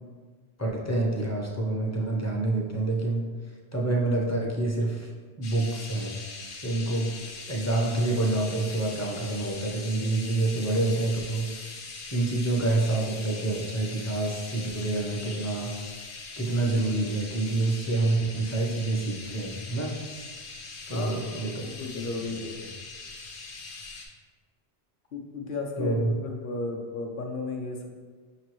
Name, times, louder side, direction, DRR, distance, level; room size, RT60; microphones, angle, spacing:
voice 1, 0.6-3.2 3.7-5.1 5.4-6.2 6.6-7.1 7.5-11.5 12.1-15.7 16.4-20.0 20.9-21.5 22.0-22.1 25.8-26.1, right 2 dB, 20° left, -1 dB, 0.4 m, -27 dB
sound 1, 5.4-24.1, left 3 dB, 85° left, 1.0 m, -41 dB
voice 2, 20.9-22.6 25.1-27.9, left 3 dB, 55° left, 1 dB, 0.7 m, -34 dB
5.9 x 3.0 x 3.0 m, 1.5 s
omnidirectional pair, 1.1 m